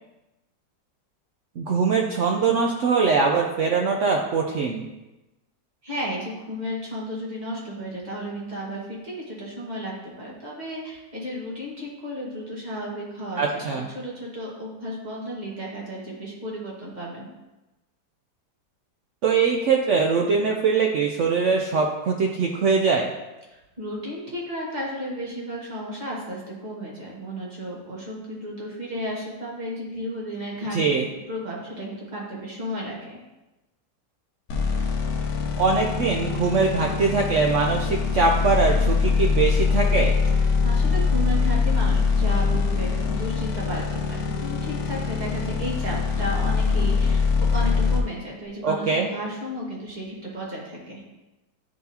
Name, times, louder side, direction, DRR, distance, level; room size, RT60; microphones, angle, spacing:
voice 1, 1.6-4.9 13.4-13.9 19.2-23.1 30.7-31.0 35.6-40.2 48.6-49.1, right 4 dB, 80° right, 1 dB, 0.6 m, -22 dB
voice 2, 5.8-17.3 23.5-30.8 31.3-33.2 40.4-47.2 47.5-51.0, equal, 25° right, -4 dB, 1.5 m, -33 dB
sound 1, 34.5-48.0, left 5 dB, 60° left, 0.8 m, -23 dB
10.0 x 4.0 x 2.8 m, 1.0 s
omnidirectional pair, 1.9 m